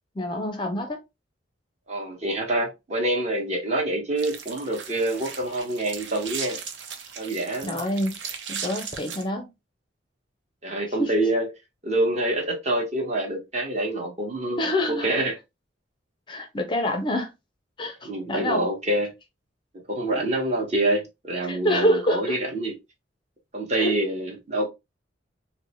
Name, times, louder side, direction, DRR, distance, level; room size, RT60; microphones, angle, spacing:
voice 1, 0.2-1.0 7.6-8.2 8.5-9.5 11.0-11.1 14.6-15.2 16.3-17.3 17.8-18.6 20.2-20.3 21.4-22.4 23.8-24.0, left 1 dB, 25° left, 0.5 m, -26 dB
voice 2, 1.9-6.6 7.2-7.8 10.6-11.5 11.8-14.6 14.9-15.4 18.0-19.1 19.9-22.7 23.5-24.6, right 1 dB, 35° right, 1.0 m, -26 dB
sound 1, 4.2-9.2, right 6 dB, 65° right, 0.6 m, -37 dB
4.1 x 2.1 x 2.9 m
head